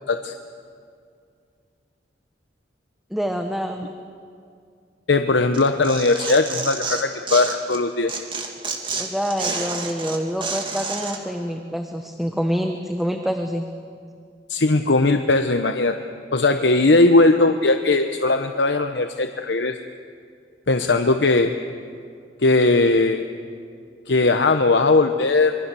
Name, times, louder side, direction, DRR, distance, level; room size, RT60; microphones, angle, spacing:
voice 1, 3.1-4.0 9.0-13.6, equal, ahead, 4 dB, 1.0 m, -26 dB
voice 2, 5.1-8.1 14.5-16.0 16.3-19.7 20.7-21.5 22.4-23.2 24.1-25.5, left 2 dB, 80° left, 7 dB, 0.9 m, -18 dB
Tearing, 5.5-7.8 8.1-11.2, right 4 dB, 30° right, 2.4 m, -29 dB
26.5 x 23.0 x 7.0 m, 2.3 s
head